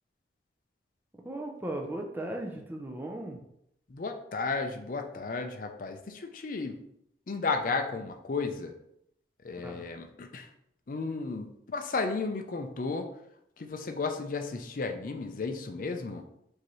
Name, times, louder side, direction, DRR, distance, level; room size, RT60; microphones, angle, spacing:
voice 1, 1.2-3.4 9.6-9.8, right 1 dB, 10° right, 1 dB, 0.5 m, -37 dB
voice 2, 3.9-6.8 7.3-8.7 9.4-10.5 10.9-13.1 13.6-16.2, left 4 dB, 45° left, 5 dB, 0.4 m, -33 dB
4.7 x 2.7 x 3.0 m, 0.75 s
head